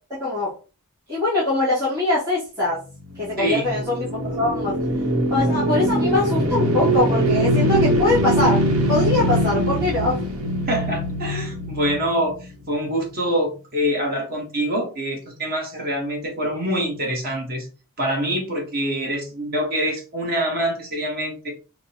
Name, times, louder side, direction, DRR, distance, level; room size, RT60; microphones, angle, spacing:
voice 1, 0.1-0.5 1.1-2.8 3.2-4.8 5.3-8.6 8.9-10.2, left 2 dB, 15° right, -12 dB, 1.9 m, -22 dB
sound 1, 3.2-12.5, right 1 dB, 85° right, 0.9 m, -22 dB
voice 2, 3.4-3.7 10.7-17.7 18.0-21.5, equal, 40° right, 0 dB, 1.1 m, -25 dB
5.8 x 2.1 x 2.8 m, 0.34 s
head